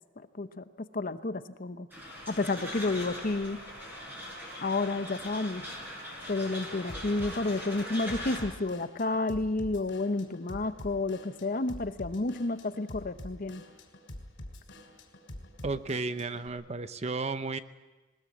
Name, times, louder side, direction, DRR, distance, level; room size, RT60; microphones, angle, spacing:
voice 1, 0.3-0.6 0.9-1.9 2.3-3.6 4.6-5.7 6.3-13.6, left 2 dB, 45° left, 11 dB, 0.9 m, -31 dB
sound 1, 1.9-8.4, equal, 10° right, 7.1 m, -41 dB
Drum kit / Drum, 6.9-16.5, left 1 dB, 80° left, 3.7 m, -46 dB
voice 2, 15.6-17.6, right 3 dB, 35° right, 12 dB, 0.7 m, -33 dB
20.0 x 20.0 x 8.4 m, 1.2 s
head